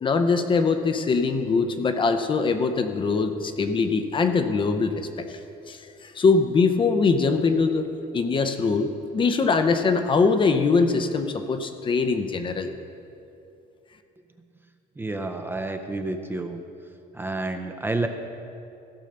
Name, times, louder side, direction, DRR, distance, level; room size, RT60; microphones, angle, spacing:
voice 1, 0.0-5.4 5.7-7.9 8.1-12.7, left 4 dB, 30° left, 8 dB, 0.7 m, -22 dB
voice 2, 15.0-16.6 17.1-18.1, right 2 dB, 15° right, 6 dB, 0.6 m, -29 dB
15.5 x 5.5 x 6.6 m, 2.6 s
cardioid pair, 135°, 16 cm